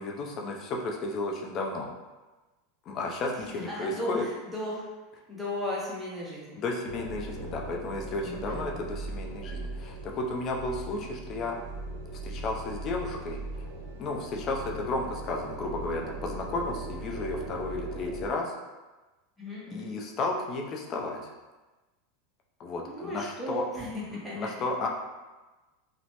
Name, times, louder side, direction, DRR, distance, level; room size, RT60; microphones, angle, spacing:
voice 1, 0.0-1.9 2.9-4.2 6.6-11.6 12.2-13.4 14.0-18.5 19.7-21.2 22.6-23.6 24.1-24.9, left 2 dB, 40° left, 0 dB, 0.5 m, -33 dB
voice 2, 3.5-4.9 5.3-6.6 8.2-8.8 19.4-19.9 22.8-24.5, left 1 dB, 5° right, -6 dB, 0.8 m, -36 dB
sound 1, 6.9-18.3, right 2 dB, 85° right, 0.5 m, -39 dB
2.9 x 2.0 x 2.9 m, 1.2 s
supercardioid pair, 120°, 0 cm